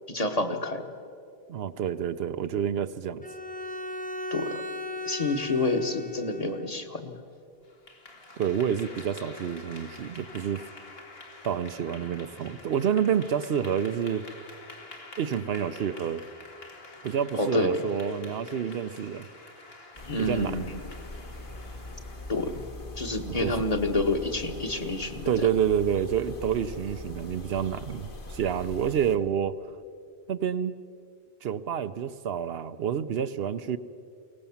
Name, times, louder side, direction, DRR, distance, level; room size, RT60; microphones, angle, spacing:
voice 1, 0.1-0.8 4.3-4.6 5.0-7.2 17.3-17.8 20.1-20.8 22.3-22.5 23.0-25.3, left 2 dB, 40° left, 4 dB, 1.5 m, -28 dB
voice 2, 1.5-3.2 8.4-10.6 11.4-14.3 15.2-16.3 17.0-19.3 20.2-20.7 23.2-23.6 25.3-29.7 30.3-30.8 31.4-33.8, right 8 dB, 75° right, 12 dB, 0.9 m, -28 dB
Bowed string instrument, 3.2-6.7, left 1 dB, 10° left, 0.7 m, -37 dB
Clapping / Applause, 7.6-22.9, left 2 dB, 70° left, 2.4 m, -48 dB
sound 1, 19.9-29.2, left 1 dB, 55° left, 1.7 m, -42 dB
23.0 x 18.0 x 7.1 m, 2.3 s
omnidirectional pair, 1.0 m